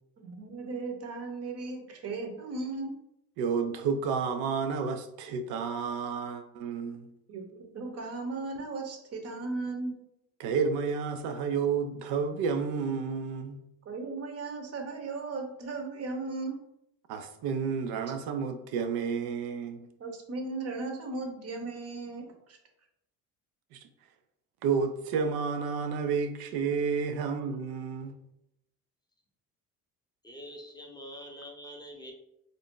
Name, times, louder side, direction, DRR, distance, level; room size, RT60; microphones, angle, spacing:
voice 1, 0.2-2.9 7.3-10.0 13.9-16.6 20.0-22.6, right 3 dB, 40° right, 4 dB, 0.8 m, -36 dB
voice 2, 3.4-7.1 10.4-13.6 17.1-19.9 23.7-23.8 24.6-28.1, right 5 dB, 85° right, 8 dB, 0.5 m, -31 dB
voice 3, 30.2-32.1, equal, 10° left, 1 dB, 0.7 m, -45 dB
2.6 x 2.2 x 3.6 m, 0.81 s
cardioid pair, 90°, 36 cm